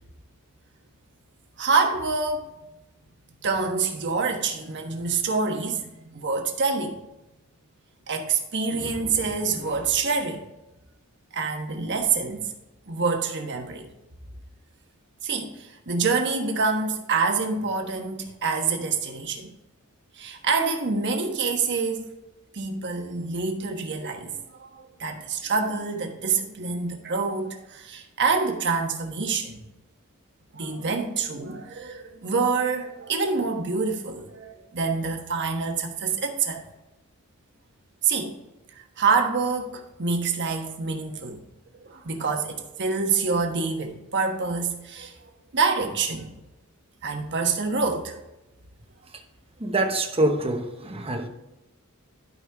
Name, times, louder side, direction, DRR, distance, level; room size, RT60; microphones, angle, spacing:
voice 1, 1.6-2.4 3.4-7.0 8.1-10.4 11.3-12.5 12.9-13.9 15.2-19.5 20.1-22.0 22.5-29.6 30.5-36.6 38.0-38.3 38.8-41.4 41.8-45.2 45.5-46.3 47.0-48.2, right 4 dB, 55° right, 3 dB, 1.3 m, -26 dB
voice 2, 49.6-51.3, right 1 dB, 25° right, 5 dB, 1.0 m, -25 dB
12.5 x 5.5 x 3.5 m, 0.96 s
head